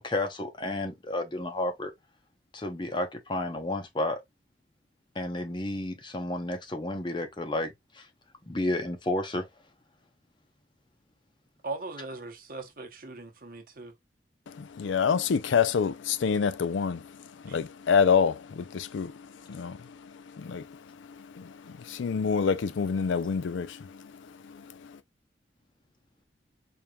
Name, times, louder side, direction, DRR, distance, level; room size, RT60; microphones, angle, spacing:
voice 1, 0.0-1.9 2.5-4.2 5.1-8.1 8.5-9.5, left 1 dB, 25° left, 0.8 m, -31 dB
voice 2, 11.6-13.9 17.5-17.6, right 3 dB, 50° right, 1.0 m, -39 dB
voice 3, 14.5-17.1 17.4-20.8 21.2-24.0 24.4-25.0, left 6 dB, 90° left, 0.4 m, -28 dB
4.4 x 3.4 x 2.3 m
head